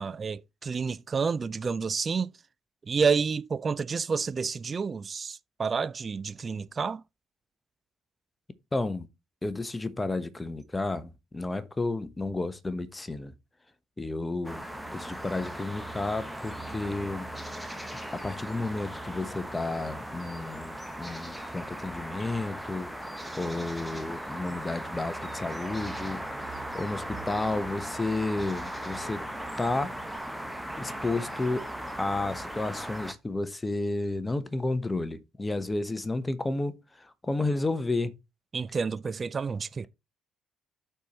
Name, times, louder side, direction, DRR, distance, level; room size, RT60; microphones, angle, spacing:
voice 1, 0.0-2.3 2.9-7.0 38.5-39.9, right 5 dB, 40° right, 0.4 m, -29 dB
voice 2, 8.7-9.1 9.4-13.3 14.0-14.6 14.9-17.2 18.1-26.2 26.7-29.2 29.6-29.9 30.8-31.7 32.0-38.1, left 2 dB, 20° left, 1.0 m, -32 dB
sound 1, 14.4-33.1, right 1 dB, ahead, 1.2 m, -38 dB
13.0 x 4.5 x 3.0 m
hypercardioid pair, 50°, 0 cm